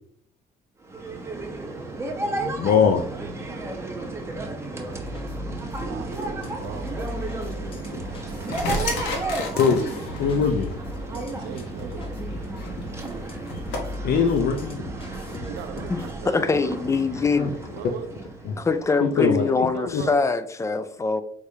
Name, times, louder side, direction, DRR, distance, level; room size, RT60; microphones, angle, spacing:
sound 1, 0.8-19.3, right 2 dB, 15° right, 0.9 m, -34 dB
voice 1, 2.3-3.1 9.6-10.7 14.0-14.8 17.4-17.5 18.4-18.5 19.0-19.5 19.9-20.0, left 6 dB, 65° left, 0.6 m, -22 dB
sound 2, 4.9-16.2, left 1 dB, 35° left, 0.9 m, -37 dB
voice 2, 5.8-9.0 11.0-12.1 15.5-15.9 16.2-16.9 17.7-18.1 19.2-20.3, right 8 dB, 85° right, 0.5 m, -39 dB
sound 3, 6.4-13.8, left 2 dB, 85° left, 1.1 m, -35 dB
voice 3, 16.3-17.6 18.6-21.2, left 4 dB, 15° left, 0.4 m, -23 dB
4.7 x 3.4 x 2.7 m
cardioid pair, 110°, 17 cm